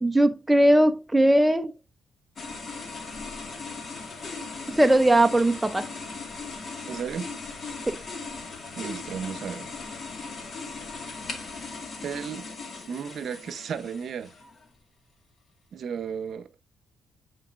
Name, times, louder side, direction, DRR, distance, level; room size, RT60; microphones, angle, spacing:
voice 1, 0.0-1.7 4.7-5.9 7.9-8.0, right 1 dB, 10° right, 0.5 m, -20 dB
sound 1, 2.4-14.7, left 4 dB, 45° left, 1.8 m, -38 dB
voice 2, 6.9-7.3 8.8-9.7 12.0-12.5 12.9-14.3 15.7-16.5, right 7 dB, 60° right, 0.7 m, -34 dB
8.2 x 4.6 x 2.5 m
cardioid pair, 90°, 0 cm